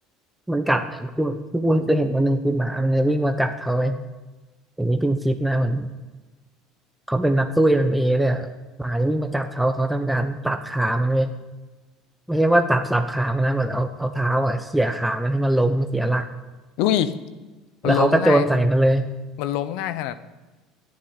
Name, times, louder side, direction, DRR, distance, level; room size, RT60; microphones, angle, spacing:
voice 1, 0.5-4.0 4.8-5.9 7.1-8.5 8.8-11.3 12.3-16.3 17.8-19.1, right 1 dB, 5° right, 6 dB, 1.0 m, -21 dB
voice 2, 16.8-17.1 17.8-18.5 19.4-20.1, left 11 dB, 75° left, 14 dB, 0.9 m, -23 dB
11.0 x 10.0 x 10.0 m, 1.2 s
supercardioid pair, 110°, 0 cm